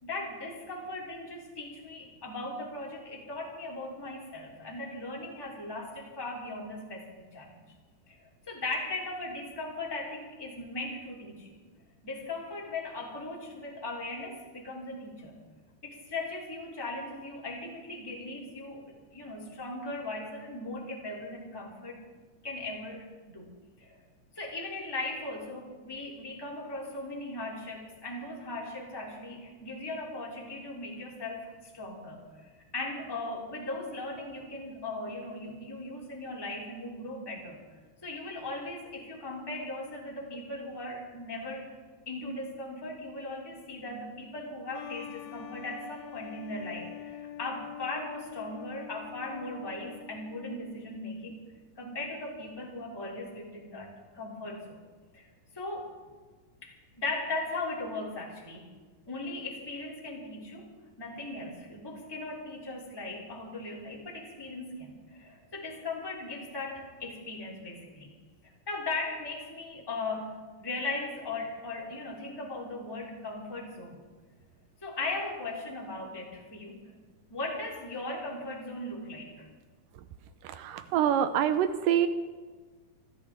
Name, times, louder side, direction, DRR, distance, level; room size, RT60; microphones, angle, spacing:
voice 1, 0.0-7.6 8.1-11.6 12.0-15.4 15.8-22.0 22.4-23.5 23.8-24.0 24.3-37.6 38.0-41.8 42.1-51.4 51.8-53.9 54.1-54.8 55.1-55.2 55.5-55.9 56.6-58.7 59.1-68.1 68.4-74.0 74.8-76.8 77.3-79.5, left 2 dB, 5° left, -3 dB, 2.4 m, -38 dB
sound 1, 44.7-51.0, left 10 dB, 80° left, 2.4 m, -45 dB
voice 2, 80.4-82.1, right 10 dB, 80° right, 10 dB, 2.0 m, -26 dB
26.5 x 11.5 x 3.6 m, 1.4 s
omnidirectional pair, 4.5 m